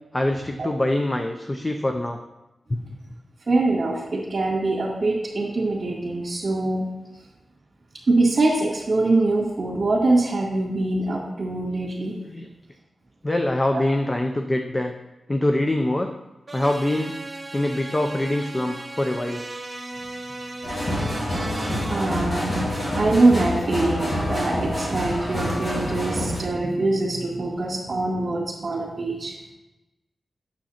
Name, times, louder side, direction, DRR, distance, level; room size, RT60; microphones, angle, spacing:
voice 1, 0.1-2.2 12.2-12.5 13.2-14.9 15.3-16.1 16.5-17.1 17.5-19.4 21.7-21.8, left 1 dB, 20° left, 4 dB, 0.5 m, -24 dB
voice 2, 3.5-6.9 8.1-12.2 13.7-13.8 21.9-29.3, right 2 dB, 45° right, -6 dB, 2.1 m, -23 dB
sound 1, 16.5-22.0, right 2 dB, 25° right, 0.9 m, -36 dB
sound 2, 20.6-26.4, equal, 40° left, 2.7 m, -27 dB
9.0 x 7.1 x 4.3 m, 1.0 s
wide cardioid pair, 135°, 0 cm